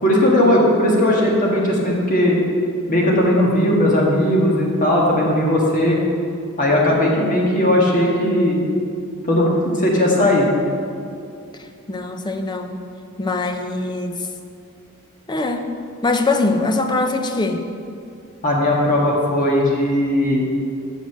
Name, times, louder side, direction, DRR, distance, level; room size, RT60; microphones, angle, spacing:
voice 1, 0.0-2.4 2.9-6.0 6.6-8.6 9.2-10.5 18.4-20.4, left 1 dB, 35° left, -3 dB, 1.6 m, -17 dB
voice 2, 11.6-12.8 13.2-14.3 15.3-15.7 16.0-17.6, left 2 dB, 20° left, 6 dB, 0.5 m, -22 dB
6.5 x 6.4 x 6.5 m, 2.5 s
head